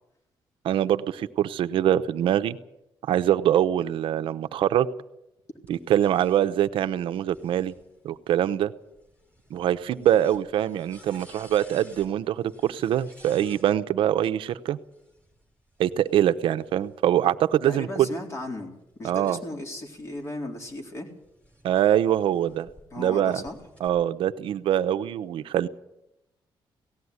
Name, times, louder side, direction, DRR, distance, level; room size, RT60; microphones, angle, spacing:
voice 1, 0.6-2.6 3.1-4.9 5.7-7.7 8.0-8.7 9.5-14.8 15.8-18.1 19.0-19.4 21.6-22.7 23.0-23.4 23.8-25.7, right 11 dB, 70° right, 11 dB, 0.8 m, -24 dB
sound 1, 5.7-13.7 14.8-17.2 17.8-22.8 23.2-23.9, equal, 15° left, 5.6 m, -55 dB
voice 2, 17.7-18.7 19.0-21.1 22.9-23.6, left 1 dB, 30° left, 2 dB, 3.9 m, -36 dB
18.0 x 15.0 x 9.6 m, 0.89 s
cardioid pair, 145°, 9 cm